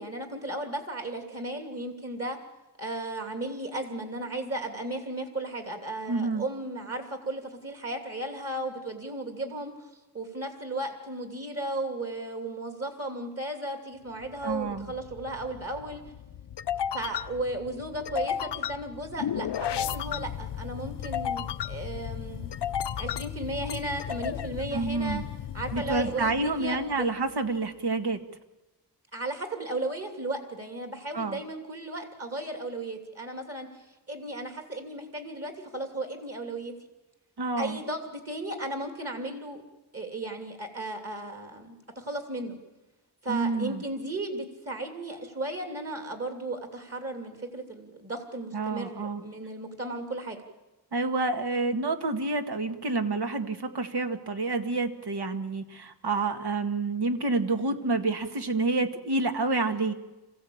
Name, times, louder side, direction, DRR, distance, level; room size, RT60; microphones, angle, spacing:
voice 1, 0.0-2.4 2.8-9.9 10.1-16.0 16.9-22.5 23.0-25.2 25.5-27.1 29.1-36.7 37.6-39.6 39.9-42.6 43.2-50.4, right 2 dB, 35° right, 5 dB, 2.9 m, -35 dB
voice 2, 6.1-6.4 14.4-14.9 24.7-25.2 25.7-28.2 31.1-31.4 37.4-37.8 43.3-43.8 48.5-49.2 50.9-59.9, right 3 dB, 70° right, 6 dB, 1.9 m, -28 dB
sound 1, 14.2-27.0, left 9 dB, 85° left, 0.7 m, -34 dB
27.5 x 15.5 x 8.7 m, 1.1 s
wide cardioid pair, 125°, 40 cm